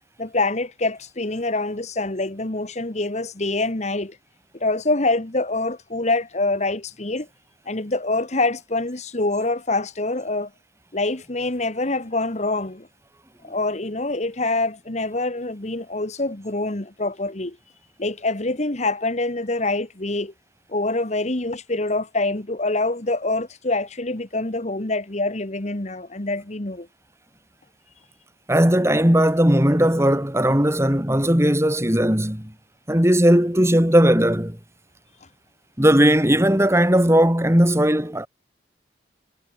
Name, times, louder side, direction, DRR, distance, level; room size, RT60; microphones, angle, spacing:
voice 1, 0.2-4.2 4.5-7.3 7.7-10.5 10.9-12.9 13.4-17.6 18.0-20.3 20.7-26.9, left 2 dB, 35° left, 1.5 m, -25 dB
voice 2, 28.5-32.5 32.9-34.6 35.8-38.3, equal, 15° right, 2.9 m, -18 dB
head